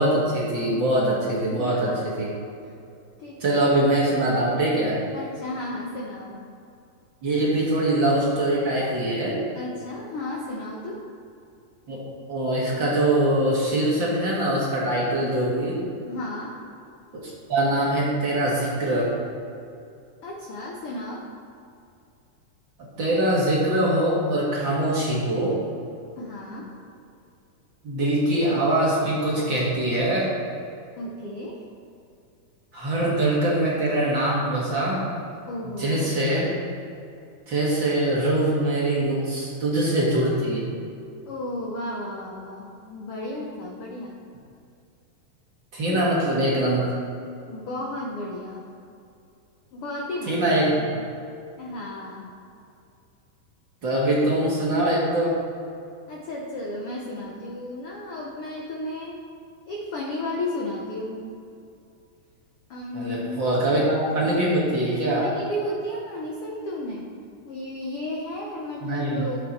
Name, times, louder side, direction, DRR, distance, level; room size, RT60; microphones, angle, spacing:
voice 1, 0.0-2.3 3.4-5.0 7.2-9.4 11.9-12.0 12.3-15.9 17.2-19.1 23.0-25.6 27.8-30.3 32.7-35.1 35.8-36.6 37.5-40.7 45.7-46.9 50.3-50.7 53.8-55.4 62.9-65.3 68.8-69.3, right 1 dB, 45° right, -5 dB, 1.7 m, -23 dB
voice 2, 1.5-2.1 3.2-3.6 5.1-6.4 9.5-11.0 16.1-16.6 20.2-21.2 26.2-26.7 31.0-31.6 35.5-36.1 41.3-44.2 45.9-46.0 47.5-48.7 49.7-50.4 50.8-50.9 51.6-52.3 56.1-59.2 59.7-61.2 62.7-63.4 65.2-67.1 67.4-69.4, left 1 dB, 90° left, -2 dB, 1.2 m, -33 dB
12.0 x 7.4 x 4.2 m, 2.6 s
omnidirectional pair, 3.9 m